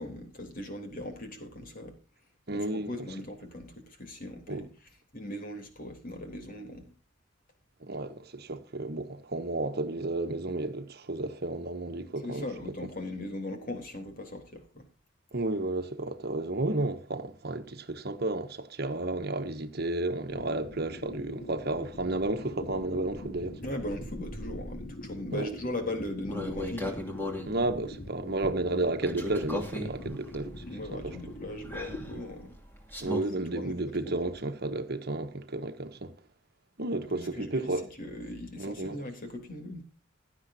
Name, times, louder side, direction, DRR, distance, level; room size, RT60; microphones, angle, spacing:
voice 1, 0.0-2.0 2.5-4.7 5.1-6.9 12.2-14.9 23.6-27.1 30.7-32.5 33.1-33.8 34.1-34.3 37.2-39.9, left 1 dB, 45° left, 3.5 m, -39 dB
voice 2, 2.5-2.9 4.5-4.6 7.8-12.5 15.3-23.6 25.3-25.5 27.5-30.6 30.9-31.2 33.0-36.1 36.8-37.8 38.6-38.9, right 2 dB, 50° right, 1.3 m, -32 dB
sound 1, 20.3-32.2, left 1 dB, 70° left, 2.7 m, -43 dB
sound 2, 26.3-27.5 29.0-33.2, left 1 dB, 10° left, 2.7 m, -37 dB
16.5 x 12.0 x 2.8 m
head